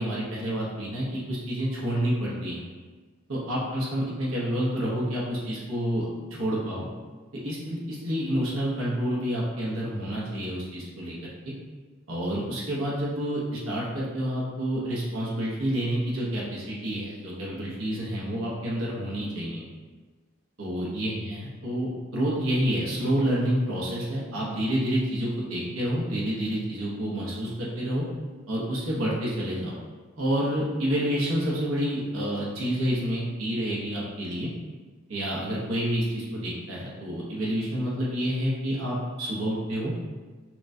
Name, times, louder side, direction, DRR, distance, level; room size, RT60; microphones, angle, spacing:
voice 1, 0.0-2.6 3.3-6.9 7.4-11.5 12.1-19.7 20.6-28.0 28.5-29.7 30.2-34.5 35.1-39.9, equal, 75° right, -5 dB, 0.9 m, -29 dB
5.8 x 2.2 x 2.6 m, 1.4 s
head